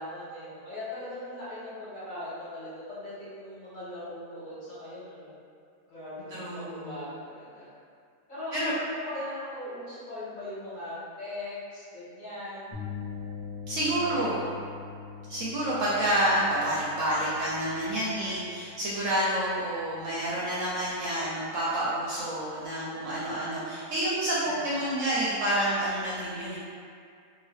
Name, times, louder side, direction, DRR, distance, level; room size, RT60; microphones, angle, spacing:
voice 1, 0.0-5.4 5.9-7.7 8.3-12.8 14.0-14.5 24.5-24.9, left 1 dB, 35° left, -13 dB, 1.1 m, -40 dB
voice 2, 6.3-6.9 8.5-8.7 13.7-14.5 15.3-26.6, right 1 dB, 70° right, -7 dB, 0.8 m, -29 dB
sound 1, 12.7-20.4, left 7 dB, 15° left, 0.6 m, -43 dB
2.8 x 2.6 x 3.3 m, 2.3 s
omnidirectional pair, 1.6 m